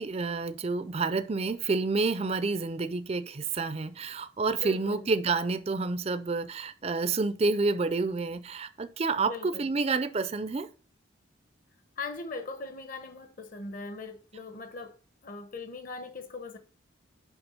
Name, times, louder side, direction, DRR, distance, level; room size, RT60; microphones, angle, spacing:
voice 1, 0.0-10.7, right 3 dB, 30° right, 0.4 m, -29 dB
voice 2, 4.6-5.1 9.2-9.7 12.0-15.0 15.2-16.6, left 3 dB, 45° left, 1.0 m, -40 dB
7.0 x 5.6 x 5.5 m
head